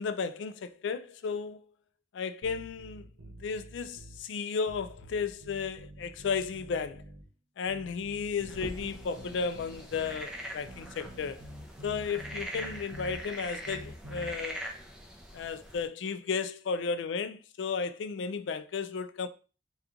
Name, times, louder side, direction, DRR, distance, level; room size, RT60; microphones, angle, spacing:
voice 1, 0.0-1.6 2.1-3.1 3.4-7.0 7.6-11.4 11.8-14.6 15.3-19.3, left 5 dB, 75° left, 0.3 m, -34 dB
sound 1, 2.4-4.2 4.7-7.3 7.7-10.2 10.7-13.2 13.7-14.3, right 1 dB, 90° right, 0.8 m, -47 dB
sound 2, 8.5-15.8, equal, 5° right, 0.4 m, -43 dB
2.9 x 2.3 x 3.6 m
head